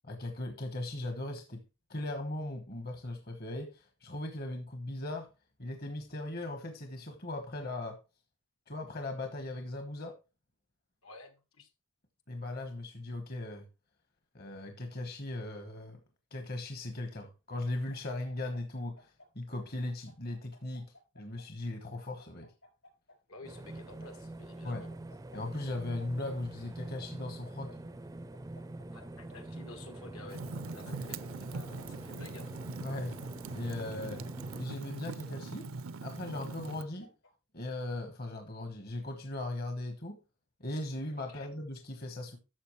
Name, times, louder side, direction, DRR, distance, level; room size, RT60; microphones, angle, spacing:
voice 1, 0.0-1.6 1.9-5.3 5.6-8.0 8.7-10.2 12.3-13.6 14.3-16.0 16.3-22.5 24.6-24.9 25.3-27.8 30.9-31.1 32.8-33.2 33.5-34.2 34.6-35.7 36.0-37.1 37.5-40.2 40.6-42.4, left 2 dB, 45° left, 1.2 m, -38 dB
voice 2, 11.0-11.7 23.3-24.9 28.9-32.6 41.3-41.5, left 2 dB, 75° left, 2.0 m, -52 dB
sound 1, 17.7-19.3 19.6-21.5 21.9-24.1 24.9-26.1 26.3-26.4 26.8-27.8 28.3-29.4 30.0-30.9 31.7-32.7 32.9-34.2 34.8-35.8 36.3-37.3, left 2 dB, 60° left, 5.0 m, -58 dB
sound 2, 23.4-34.6, right 2 dB, 15° right, 0.4 m, -45 dB
Fire, 30.3-36.8, right 3 dB, 70° right, 0.5 m, -42 dB
12.5 x 6.9 x 3.1 m
head